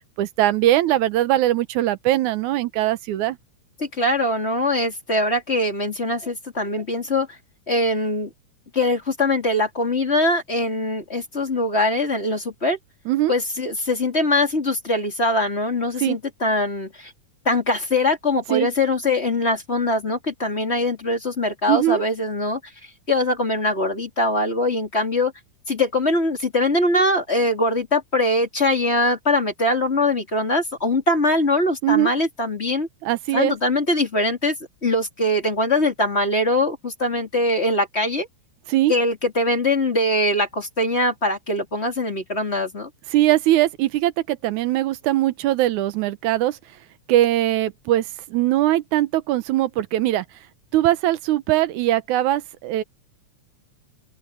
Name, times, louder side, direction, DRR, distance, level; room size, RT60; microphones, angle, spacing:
voice 1, 0.2-3.4 13.1-13.3 16.0-16.2 18.5-18.7 21.7-22.0 31.8-32.1 33.0-33.5 38.7-38.9 43.1-46.6 47.1-50.3 50.7-52.8, right 14 dB, 85° right, 2.3 m, -21 dB
voice 2, 3.8-7.4 7.7-8.3 8.7-12.8 13.3-17.1 17.4-22.7 23.1-25.3 25.7-32.9 33.3-34.5 34.8-38.3 38.9-42.9, left 1 dB, 20° left, 3.1 m, -22 dB
omnidirectional pair, 3.3 m